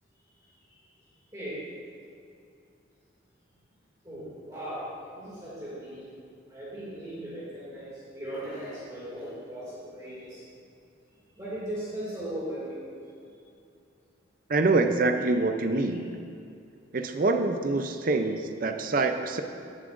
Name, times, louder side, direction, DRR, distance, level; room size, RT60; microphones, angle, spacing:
voice 1, 4.0-4.8 5.1-6.0 6.5-10.4 11.3-12.8 15.7-16.0 18.9-19.1, right 1 dB, 20° right, -10 dB, 2.4 m, -38 dB
voice 2, 14.5-16.2 16.9-19.4, right 3 dB, 45° right, 6 dB, 0.5 m, -25 dB
17.0 x 7.4 x 2.6 m, 2.6 s
head